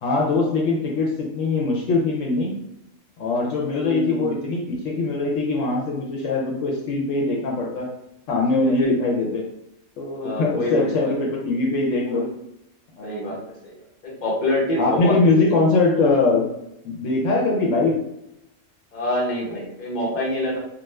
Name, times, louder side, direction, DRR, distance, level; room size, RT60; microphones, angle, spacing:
voice 1, 0.0-2.5 3.2-7.9 8.3-9.5 10.0-12.2 13.0-13.3 14.8-16.5 16.8-18.0, left 3 dB, 75° left, -1 dB, 1.0 m, -22 dB
voice 2, 3.7-4.4 8.6-9.0 10.2-11.1 12.1-12.3 13.0-13.4 13.6-13.7 14.0-15.1 18.9-20.6, left 1 dB, 40° left, -4 dB, 1.0 m, -26 dB
2.4 x 2.4 x 3.2 m, 0.82 s
omnidirectional pair, 1.3 m